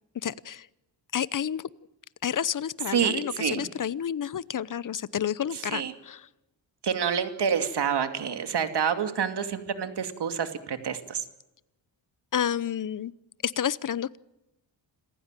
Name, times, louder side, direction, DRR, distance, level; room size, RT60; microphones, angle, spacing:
voice 1, 0.2-0.7 1.1-1.7 2.2-6.3 12.3-13.1 13.4-14.2, left 9 dB, 45° left, 20 dB, 0.8 m, -30 dB
voice 2, 2.9-3.6 5.7-5.9 6.8-11.2, right 7 dB, 60° right, 8 dB, 2.6 m, -28 dB
27.0 x 15.5 x 9.0 m, 0.97 s
cardioid pair, 100°, 45 cm